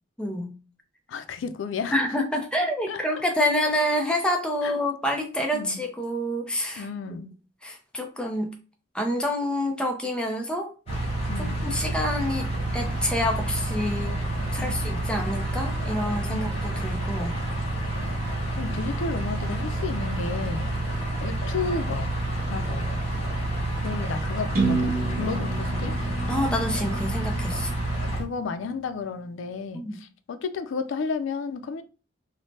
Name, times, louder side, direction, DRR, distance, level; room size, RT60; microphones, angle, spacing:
voice 1, 0.2-0.6 1.9-6.9 7.6-8.5 8.9-10.7 11.6-14.2 14.5-17.3 26.3-27.8 29.7-30.0, left 1 dB, 5° left, 0.5 m, -27 dB
voice 2, 1.1-2.0 2.9-3.0 4.6-4.7 5.5-5.8 6.8-7.3 11.3-11.7 14.6-15.1 16.3-16.6 18.6-20.7 21.2-22.1 22.5-22.9 23.8-26.0 28.0-31.8, left 4 dB, 90° left, 0.4 m, -33 dB
sound 1, 10.9-28.2, left 1 dB, 35° left, 1.0 m, -37 dB
sound 2, 10.9-28.3, right 2 dB, 85° right, 0.4 m, -29 dB
sound 3, 24.5-28.4, right 3 dB, 50° right, 0.8 m, -30 dB
3.1 x 2.1 x 2.7 m
head